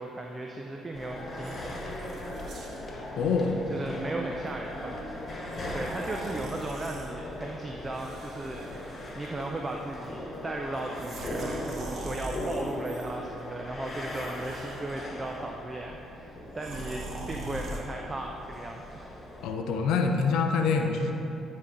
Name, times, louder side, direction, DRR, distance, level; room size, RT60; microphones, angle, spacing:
voice 1, 0.0-1.8 3.7-5.0 5.3-19.1, right 2 dB, 30° right, 1 dB, 0.5 m, -36 dB
sound 1, 0.9-19.5, left 1 dB, 35° left, 1.5 m, -39 dB
sound 2, 1.4-2.9 3.6-3.8 5.4-7.1 7.9-9.4 9.6-10.1 10.8-13.1 13.8-15.2 16.6-17.8, right 2 dB, 55° right, 0.9 m, -42 dB
voice 2, 3.2-3.6 19.4-21.1, left 5 dB, 70° left, 4 dB, 0.6 m, -25 dB
9.4 x 4.2 x 3.8 m, 2.9 s
hypercardioid pair, 55°, 0 cm